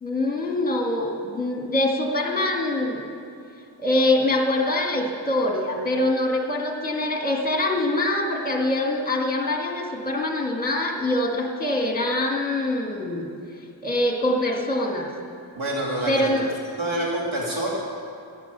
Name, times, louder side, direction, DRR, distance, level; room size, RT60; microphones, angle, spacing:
voice 1, 0.0-3.0 3.8-13.3 13.8-15.1 16.1-16.5, left 1 dB, 20° left, 1 dB, 1.7 m, -24 dB
voice 2, 15.5-16.3 16.8-17.7, right 1 dB, 85° right, -4 dB, 3.1 m, -27 dB
14.0 x 10.5 x 6.7 m, 2.4 s
wide cardioid pair, 160°, 48 cm